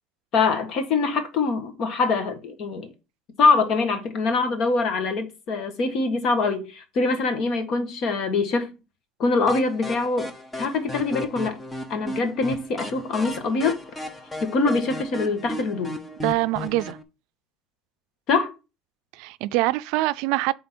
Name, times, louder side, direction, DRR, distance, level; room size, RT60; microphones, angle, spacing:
voice 1, 0.3-2.9 3.4-8.7 9.2-10.3 10.6-11.6 11.9-13.8 14.4-15.9 18.3-18.5, left 4 dB, 50° left, 1.5 m, -23 dB
sound 1, 9.5-17.0, left 1 dB, 15° left, 0.8 m, -35 dB
voice 2, 16.2-17.0 19.1-20.5, right 18 dB, 75° right, 0.4 m, -24 dB
7.7 x 3.8 x 4.4 m
cardioid pair, 135°, 0 cm